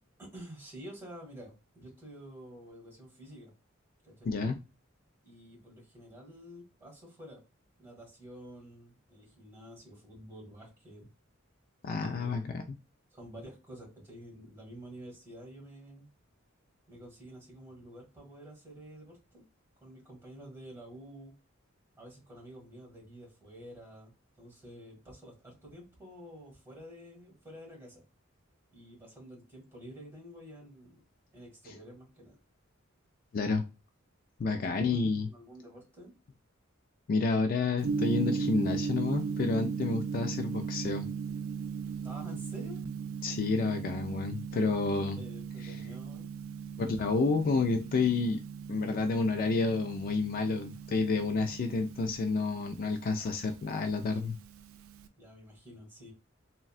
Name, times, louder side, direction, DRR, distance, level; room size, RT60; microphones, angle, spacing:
voice 1, 0.2-3.5 4.0-4.3 5.2-7.4 7.8-11.1 12.0-12.5 13.1-16.1 16.9-19.4 19.8-21.3 22.0-28.0 28.7-31.0 31.3-32.4 34.6-36.1 42.0-42.8 45.2-46.3 53.2-53.4 55.2-56.1, equal, 10° right, -3 dB, 1.5 m, -49 dB
voice 2, 4.3-4.6 11.8-12.6 33.3-33.6 34.4-35.3 37.1-41.1 43.2-45.2 46.8-48.4 48.7-54.4, left 4 dB, 45° left, 5 dB, 0.3 m, -30 dB
Gong, 37.8-55.1, right 5 dB, 75° right, 0.4 m, -37 dB
3.6 x 2.1 x 2.4 m, 0.29 s
head